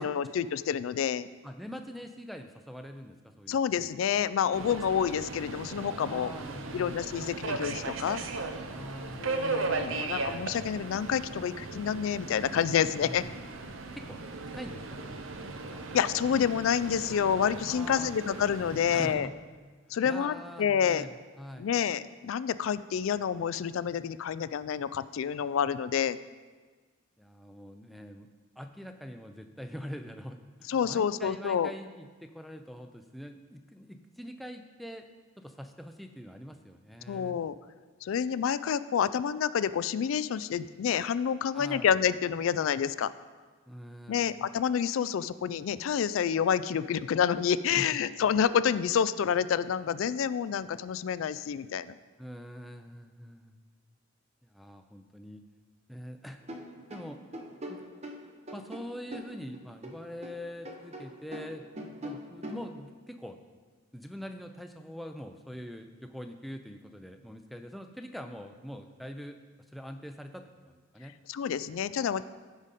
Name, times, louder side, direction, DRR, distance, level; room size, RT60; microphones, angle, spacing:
voice 1, 0.0-1.3 3.5-6.3 6.7-8.2 9.2-13.2 15.9-19.3 19.9-21.1 21.6-26.2 30.7-31.7 37.1-37.5 38.0-43.1 44.1-51.9 71.3-72.2, left 8 dB, 80° left, 14 dB, 0.3 m, -28 dB
voice 2, 1.4-3.9 4.6-4.8 6.0-7.1 8.7-10.3 13.0-13.3 13.9-14.2 14.5-15.2 15.5-15.9 17.6-18.1 18.9-19.3 19.9-21.8 27.2-28.3 28.6-35.0 35.4-37.4 41.5-42.0 43.7-44.3 47.7-47.9 52.2-53.5 54.4-55.4 55.9-56.4 56.9-57.2 57.7-57.8 58.5-61.7 62.0-63.4 63.9-69.4 69.7-71.1, equal, ahead, 5 dB, 0.5 m, -44 dB
Subway metro underground, 4.5-19.1, right 3 dB, 80° right, 0.7 m, -37 dB
sound 1, 56.4-60.4 60.6-62.7, right 1 dB, 30° right, 0.9 m, -42 dB
15.0 x 5.1 x 4.1 m, 1.4 s
head